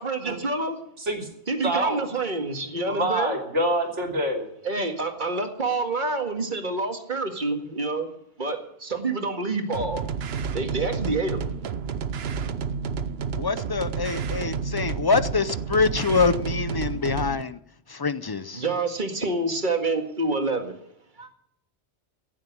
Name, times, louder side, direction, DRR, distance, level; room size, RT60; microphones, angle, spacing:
voice 1, 0.0-0.8 1.5-3.4 4.6-8.1 8.4-10.0 10.5-11.5 18.6-20.8 21.2-21.3, right 3 dB, 40° right, 5 dB, 2.1 m, -27 dB
voice 2, 1.0-1.3 1.6-2.0 2.8-4.5, right 1 dB, 85° right, 2 dB, 3.3 m, -26 dB
sound 1, 9.7-17.4, right 6 dB, 65° right, 1.0 m, -30 dB
voice 3, 13.4-17.6 17.9-18.6, left 4 dB, 35° left, 14 dB, 0.3 m, -25 dB
16.0 x 7.5 x 9.4 m, 0.74 s
omnidirectional pair, 1.2 m